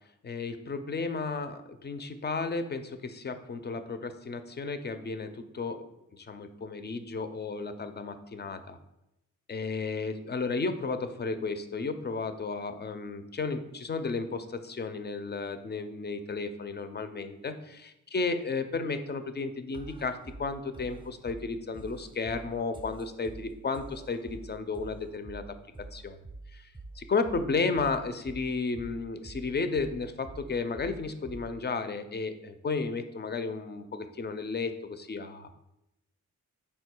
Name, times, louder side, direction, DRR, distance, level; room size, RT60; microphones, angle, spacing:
voice 1, 0.2-5.8 6.3-8.8 9.5-17.8 18.1-25.4 25.9-26.2 26.5-26.7 27.0-35.5, left 4 dB, 35° left, 9 dB, 0.4 m, -33 dB
sound 1, 19.7-31.7, right 2 dB, 15° right, 0.5 m, -47 dB
4.2 x 2.3 x 4.4 m, 0.88 s
cardioid pair, 55°, 31 cm